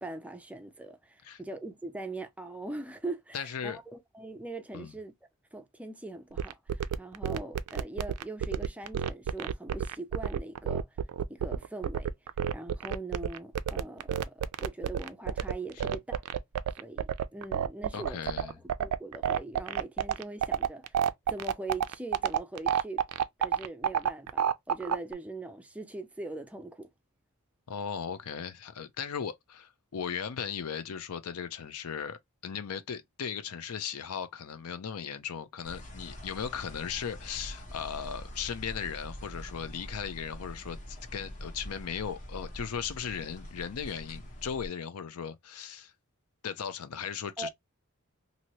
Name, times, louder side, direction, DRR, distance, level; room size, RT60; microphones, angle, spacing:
voice 1, 0.0-5.1 5.5-10.9 11.3-12.1 12.5-16.2 16.8-18.5 18.8-21.0 21.3-23.0 23.4-26.9 47.4-47.5, right 2 dB, 5° right, 0.4 m, -41 dB
voice 2, 3.3-3.8 4.7-4.9 15.8-15.9 17.9-18.6 27.7-45.9 46.4-47.5, left 7 dB, 80° left, 0.5 m, -37 dB
sound 1, 6.4-25.1, right 8 dB, 80° right, 0.3 m, -29 dB
sound 2, 35.6-44.7, equal, 35° left, 0.9 m, -44 dB
2.8 x 2.6 x 2.9 m
head